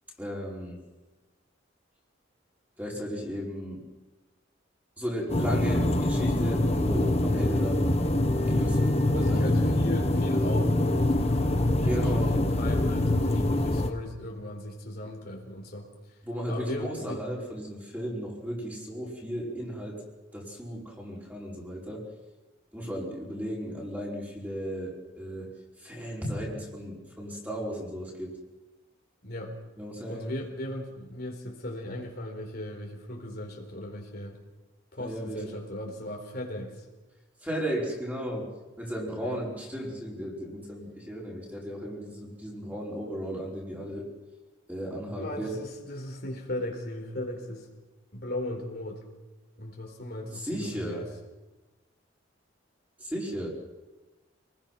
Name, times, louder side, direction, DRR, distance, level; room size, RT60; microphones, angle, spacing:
voice 1, 0.2-0.8 2.8-3.9 5.0-7.9 8.5-9.4 11.8-12.4 16.2-20.0 20.3-22.1 22.7-25.5 25.8-28.4 29.8-30.3 35.0-35.6 37.4-38.5 38.8-44.1 44.7-45.6 50.3-51.0 53.0-53.5, equal, 10° right, -4 dB, 5.4 m, -35 dB
sound 1, 5.3-13.9, left 1 dB, 35° left, 1.3 m, -24 dB
voice 2, 9.0-16.2 16.5-17.2 29.2-29.5 30.1-34.4 34.9-36.9 39.2-39.4 45.1-47.7 48.1-49.0 49.6-51.1, left 1 dB, 55° left, 1 dB, 4.3 m, -37 dB
28.0 x 20.5 x 6.0 m, 1.2 s
head